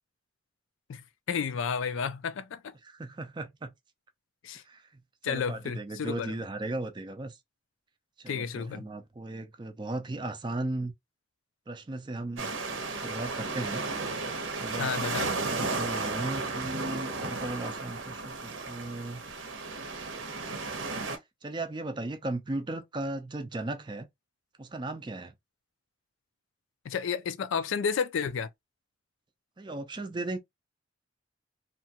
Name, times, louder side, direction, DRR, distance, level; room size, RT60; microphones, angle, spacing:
voice 1, 0.9-2.7 4.4-4.6 5.2-6.3 8.3-8.9 14.8-15.3 26.8-28.5, left 6 dB, 80° left, 0.4 m, -32 dB
voice 2, 2.8-3.7 4.7-7.4 8.2-10.9 11.7-12.5 13.0-13.8 14.6-14.9 15.5-19.2 21.4-24.1 24.6-25.3 29.6-30.4, right 2 dB, 25° right, 0.4 m, -36 dB
sound 1, 12.4-21.2, right 3 dB, 80° right, 0.7 m, -34 dB
2.9 x 2.2 x 2.8 m
head